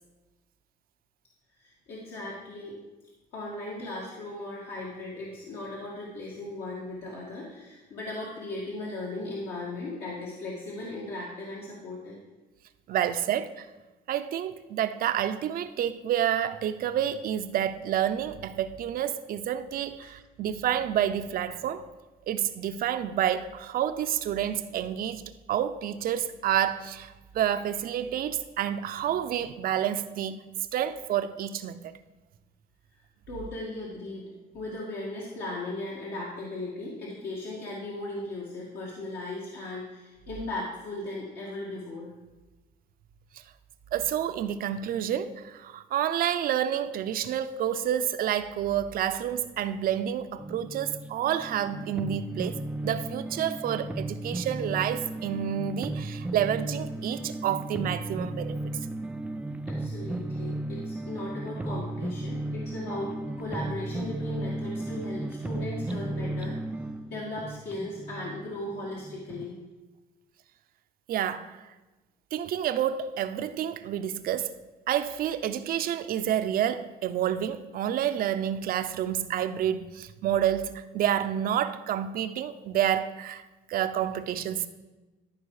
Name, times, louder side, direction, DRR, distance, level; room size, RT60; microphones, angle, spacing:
voice 1, 1.6-2.8 3.3-12.2 20.0-20.1 33.3-42.1 59.7-66.6 67.1-69.6, left 2 dB, 70° left, 1.9 m, -37 dB
voice 2, 12.9-13.7 14.1-21.9 22.3-25.2 25.5-30.4 30.7-31.9 43.9-52.6 52.8-58.6 71.1-71.6 72.3-74.5 74.9-83.4 83.7-84.7, right 10 dB, 60° right, 0.6 m, -29 dB
sound 1, 50.4-69.5, right 2 dB, 10° right, 0.3 m, -35 dB
13.5 x 4.7 x 4.8 m
cardioid pair, 110°, 17 cm